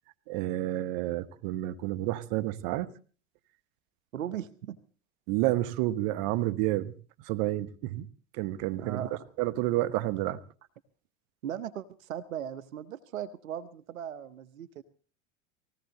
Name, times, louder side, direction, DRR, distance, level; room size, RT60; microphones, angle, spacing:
voice 1, 0.3-2.9 5.3-6.9 7.2-8.1 8.3-10.4, right 15 dB, 60° right, 1.2 m, -30 dB
voice 2, 4.1-4.8 8.8-9.2 11.4-14.8, right 10 dB, 90° right, 0.9 m, -38 dB
19.5 x 16.5 x 3.9 m
hypercardioid pair, 90°, 39 cm